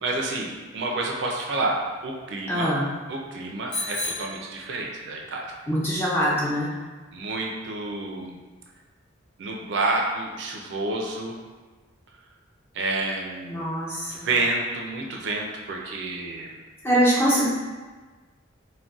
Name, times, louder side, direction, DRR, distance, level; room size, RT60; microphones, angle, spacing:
voice 1, 0.0-2.7 3.1-5.5 7.1-8.4 9.4-11.3 12.7-13.6 14.1-16.5, right 2 dB, 55° right, -1 dB, 0.4 m, -29 dB
voice 2, 2.5-2.9 5.7-6.7 13.4-14.3 16.8-17.5, equal, 10° left, -7 dB, 0.5 m, -23 dB
Bicycle bell, 3.7-5.3, left 2 dB, 30° left, 0.9 m, -33 dB
3.8 x 2.1 x 2.3 m, 1.3 s
head